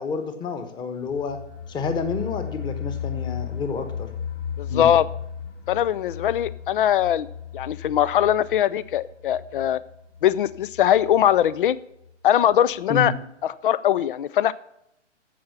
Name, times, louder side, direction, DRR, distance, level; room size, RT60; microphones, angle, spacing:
voice 1, 0.0-1.4 1.7-4.1 4.7-4.9 12.9-13.1, left 4 dB, 10° left, 9 dB, 1.2 m, -29 dB
sound 1, 1.1-11.7 12.0-12.1 12.5-12.6, left 8 dB, 60° left, 2.6 m, -36 dB
voice 2, 4.6-5.1 5.7-7.3 7.5-9.8 10.2-11.8 12.2-13.1 13.6-14.5, left 10 dB, 45° left, 19 dB, 0.6 m, -21 dB
15.0 x 5.7 x 7.2 m, 0.80 s
hypercardioid pair, 140°, 37 cm